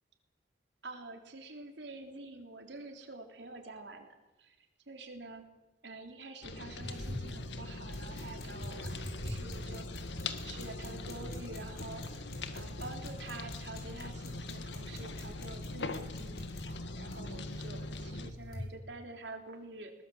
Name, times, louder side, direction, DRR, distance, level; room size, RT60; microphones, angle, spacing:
voice 1, 0.8-4.1 4.4-5.4 5.8-10.0 10.4-19.9, right 2 dB, 80° right, 5 dB, 3.5 m, -48 dB
sound 1, 6.4-18.3, left 3 dB, 80° left, 1.7 m, -42 dB
sound 2, 6.8-18.7, left 1 dB, 60° left, 5.5 m, -44 dB
21.5 x 19.5 x 7.9 m, 1.0 s
head